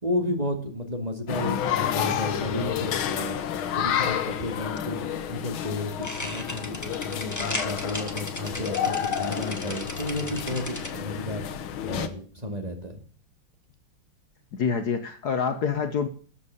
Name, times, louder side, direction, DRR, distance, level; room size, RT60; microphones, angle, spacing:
voice 1, 0.0-3.4 3.8-5.0 5.3-11.5 11.8-13.0, left 1 dB, 20° right, 4 dB, 2.2 m, -32 dB
sound 1, 1.3-12.1, left 9 dB, 80° left, 1.9 m, -30 dB
sound 2, 6.0-10.9, left 1 dB, 10° left, 1.5 m, -36 dB
voice 2, 14.5-16.1, left 6 dB, 55° left, 8 dB, 1.4 m, -26 dB
13.0 x 8.0 x 6.8 m, 0.42 s
omnidirectional pair, 2.2 m